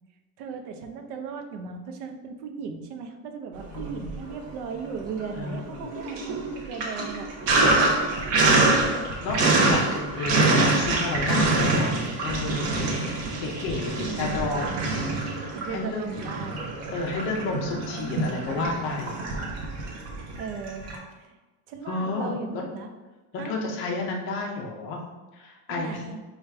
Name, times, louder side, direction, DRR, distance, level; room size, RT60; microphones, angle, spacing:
voice 1, 0.4-7.3 14.0-15.1 15.5-16.6 19.8-20.0 20.4-21.4 21.7-22.9 23.4-23.5 25.7-26.2, right 5 dB, 80° right, 5 dB, 0.7 m, -37 dB
Sink (filling or washing), 3.6-4.5 4.9-21.0, right 2 dB, 35° right, 0.7 m, -25 dB
voice 2, 3.7-4.1 5.4-5.9 8.3-8.9 9.2-11.9 12.2-12.7 13.4-14.7 15.7-16.0 16.9-19.2 21.9-22.6 23.3-25.0 25.3-26.0, left 3 dB, 30° left, 1 dB, 0.4 m, -31 dB
4.8 x 2.4 x 3.2 m, 1.2 s
cardioid pair, 180°, 43 cm